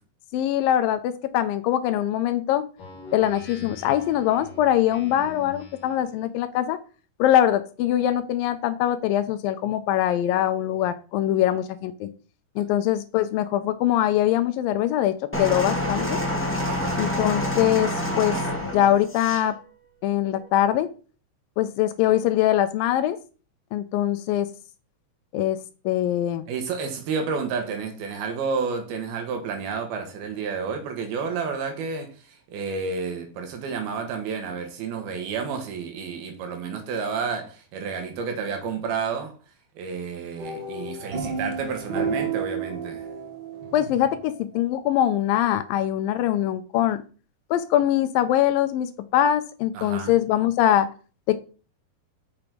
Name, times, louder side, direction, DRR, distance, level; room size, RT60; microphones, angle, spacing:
voice 1, 0.3-2.6 3.1-6.8 7.2-12.1 12.6-16.2 17.0-19.6 20.0-20.9 21.6-23.2 23.7-24.5 25.3-25.6 25.9-26.5 43.7-47.0 47.5-50.9 51.3-51.4, left 12 dB, 80° left, 2.2 m, -23 dB
Speech synthesizer, 2.8-6.1, left 3 dB, 45° left, 2.2 m, -43 dB
sound 1, 15.3-19.5 20.3-20.5, left 1 dB, 5° left, 1.2 m, -27 dB
voice 2, 16.6-17.1 26.5-39.4 39.8-43.1 49.7-50.1, right 5 dB, 80° right, 3.3 m, -30 dB
sound 2, 40.4-44.7, right 5 dB, 55° right, 1.2 m, -32 dB
6.8 x 6.1 x 5.2 m
omnidirectional pair, 4.3 m